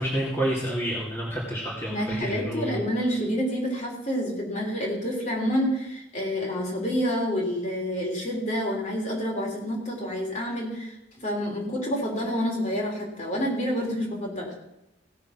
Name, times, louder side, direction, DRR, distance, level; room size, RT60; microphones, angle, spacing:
voice 1, 0.0-2.8, right 1 dB, 15° left, -5 dB, 2.5 m, -29 dB
voice 2, 1.9-14.5, equal, 40° left, -1 dB, 3.5 m, -28 dB
16.5 x 6.7 x 6.0 m, 0.91 s
head